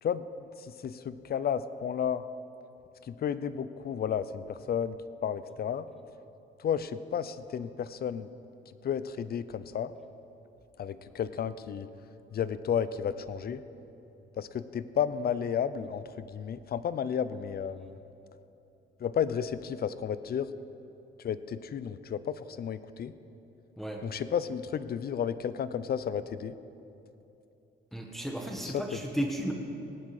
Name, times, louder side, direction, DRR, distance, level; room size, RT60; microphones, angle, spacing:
voice 1, 0.0-2.2 3.1-4.9 5.2-5.9 6.6-8.3 8.8-9.9 10.8-11.9 12.3-13.6 14.4-18.0 19.0-20.5 21.2-23.1 24.0-26.5 28.6-28.8, left 8 dB, 50° left, 14 dB, 0.6 m, -32 dB
voice 2, 27.9-29.5, equal, ahead, 1 dB, 1.4 m, -34 dB
18.0 x 9.6 x 4.9 m, 2.9 s
cardioid pair, 90°, 20 cm